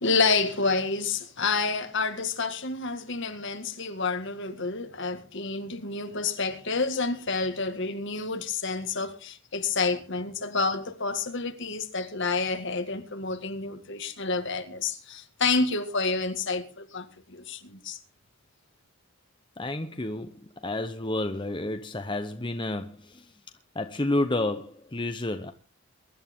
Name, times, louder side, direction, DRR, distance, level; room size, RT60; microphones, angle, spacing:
voice 1, 0.0-18.0, left 4 dB, 55° left, 1.9 m, -29 dB
voice 2, 19.6-23.3 23.7-25.5, left 2 dB, 20° left, 0.9 m, -30 dB
23.0 x 11.0 x 3.7 m
head